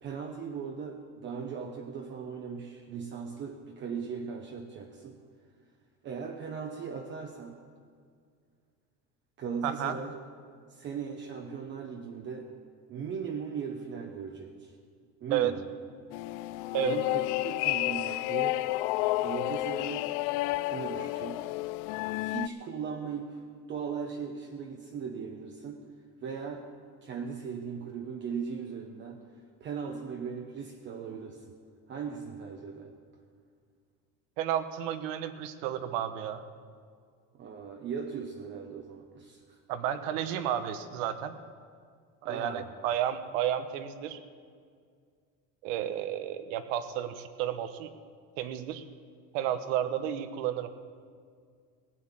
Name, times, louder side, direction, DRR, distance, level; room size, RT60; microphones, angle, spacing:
voice 1, 0.0-5.2 6.0-7.6 9.4-10.1 10.7-12.5 12.9-14.8 15.2-15.6 16.8-18.6 19.2-20.1 20.6-21.5 22.1-23.4 23.7-25.8 26.2-26.7 27.0-29.2 29.6-31.4 31.9-32.9 37.3-39.6 42.2-42.7, right 6 dB, 30° right, 3 dB, 0.8 m, -38 dB
voice 2, 9.6-10.0 15.3-15.5 16.7-17.0 34.4-36.4 39.7-41.4 42.2-44.2 45.6-47.9 48.4-48.8 49.3-50.7, right 10 dB, 85° right, 11 dB, 1.1 m, -32 dB
sound 1, 16.1-22.5, left 18 dB, 70° left, 0.5 m, -31 dB
17.0 x 8.7 x 7.5 m, 2.1 s
cardioid pair, 160°, 37 cm